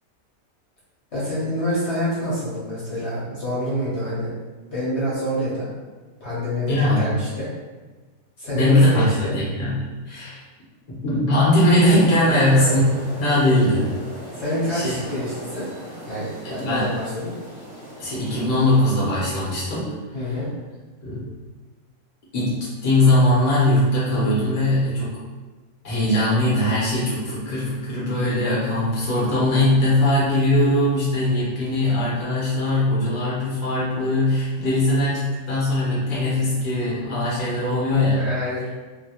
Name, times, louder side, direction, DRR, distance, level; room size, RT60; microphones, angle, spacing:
voice 1, 1.1-4.3 4.7-5.7 6.2-7.5 8.4-9.3 12.3-12.8 14.3-15.7 16.1-17.3 20.1-20.5 37.9-38.6, equal, 50° left, -9 dB, 1.1 m, -27 dB
voice 2, 6.7-7.1 8.5-10.4 10.9-12.8 13.2-13.9 14.7-14.9 16.4-16.9 18.0-20.4 21.0-21.3 22.3-25.2 25.8-38.2, left 1 dB, 30° left, -8 dB, 0.9 m, -20 dB
sound 1, 11.7-19.0, equal, 50° right, 1.1 m, -38 dB
2.8 x 2.8 x 2.9 m, 1.3 s
omnidirectional pair, 1.7 m